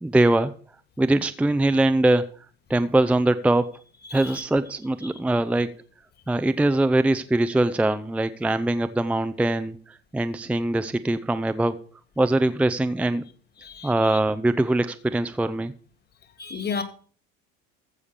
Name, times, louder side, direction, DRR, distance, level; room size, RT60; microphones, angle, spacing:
voice 1, 0.0-0.5 1.0-2.3 2.7-3.7 4.1-5.7 6.3-11.8 12.2-13.2 13.8-15.7, right 2 dB, 5° right, 0.6 m, -22 dB
voice 2, 4.0-4.4 5.1-5.2 13.6-14.2 16.4-16.8, left 5 dB, 35° left, 2.2 m, -33 dB
14.5 x 5.0 x 6.8 m
supercardioid pair, 105°, 30 cm